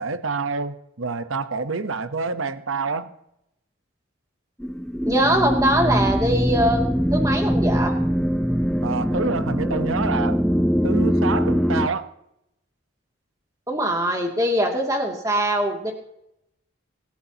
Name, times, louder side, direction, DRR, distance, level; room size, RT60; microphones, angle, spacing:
voice 1, 0.0-3.1 8.8-10.4 10.8-12.1, right 4 dB, 80° right, 11 dB, 1.0 m, -27 dB
sound 1, 4.6-11.9, equal, ahead, 0.5 m, -22 dB
voice 2, 5.1-6.8 7.1-7.9 13.7-15.9, right 1 dB, 15° right, 1 dB, 2.4 m, -22 dB
25.0 x 13.0 x 2.9 m, 0.80 s
head